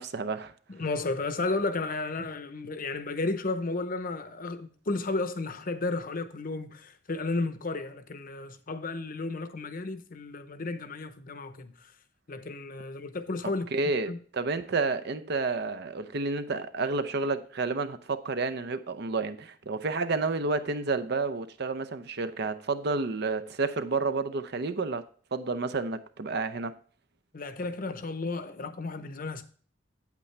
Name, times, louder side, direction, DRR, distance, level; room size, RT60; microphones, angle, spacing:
voice 1, 0.0-0.5 13.7-25.0 25.3-26.8, right 3 dB, 60° right, 0.6 m, -30 dB
voice 2, 0.7-11.7 12.3-13.7 14.1-14.2 27.3-29.4, left 3 dB, 50° left, 0.8 m, -33 dB
8.4 x 8.3 x 3.3 m
head